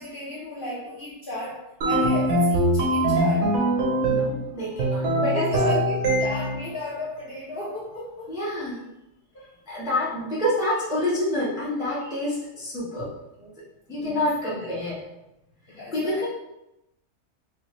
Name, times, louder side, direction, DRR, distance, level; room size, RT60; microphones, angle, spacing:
voice 1, 0.0-3.5 5.3-8.7 9.3-9.5 14.0-14.7 15.7-16.3, left 2 dB, 60° left, -4 dB, 0.5 m, -34 dB
sound 1, 1.8-4.4 4.8-6.7, right 1 dB, 60° right, 0.8 m, -22 dB
voice 2, 4.0-5.8 8.3-8.8 9.7-13.5 13.9-15.0 15.7-16.3, left 1 dB, 5° right, -7 dB, 0.5 m, -28 dB
4.6 x 2.0 x 2.9 m, 0.91 s
omnidirectional pair, 1.6 m